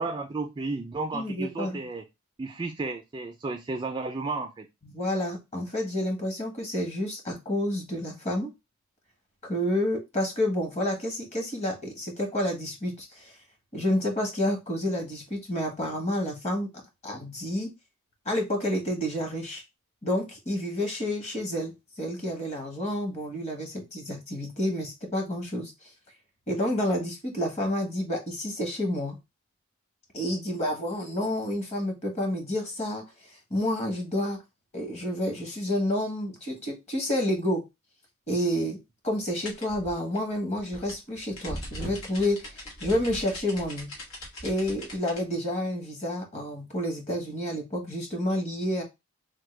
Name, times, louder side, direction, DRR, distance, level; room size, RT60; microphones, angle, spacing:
voice 1, 0.0-2.0 2.4-4.7, right 3 dB, 20° right, 5 dB, 0.3 m, -33 dB
voice 2, 1.1-1.8 4.8-8.5 9.4-13.3 13.7-16.7 17.0-17.7 18.2-19.6 20.0-25.7 26.5-29.2 30.1-33.0 33.5-34.4 34.7-37.6 38.3-38.8 39.0-43.9 44.4-48.8, left 1 dB, 30° left, 3 dB, 1.1 m, -29 dB
sound 1, 39.4-45.2, equal, 90° left, 1.3 m, -40 dB
3.4 x 2.2 x 3.1 m, 0.22 s
head